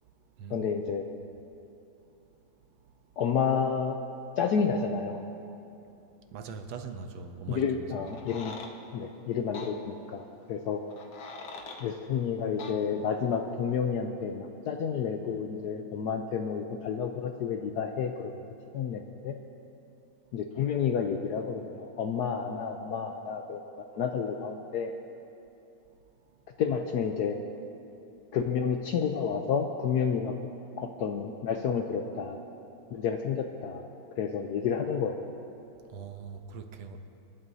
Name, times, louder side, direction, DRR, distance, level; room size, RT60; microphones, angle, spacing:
voice 1, 0.5-1.0 3.2-4.0 4.4-5.2 7.5-8.6 8.9-10.2 10.5-10.8 11.8-18.3 18.7-19.3 20.3-23.6 23.9-24.9 26.6-27.4 28.3-30.3 30.8-32.4 32.9-33.9 34.2-35.3, left 6 dB, 70° left, 4 dB, 0.9 m, -30 dB
voice 2, 6.3-7.6 8.0-8.1 35.9-37.0, right 6 dB, 80° right, 6 dB, 1.6 m, -41 dB
sound 1, 8.1-8.7 9.5-9.7 10.9-11.8 12.6-12.8, left 4 dB, 90° left, 1.8 m, -42 dB
27.0 x 11.0 x 2.7 m, 2.8 s
omnidirectional pair, 2.2 m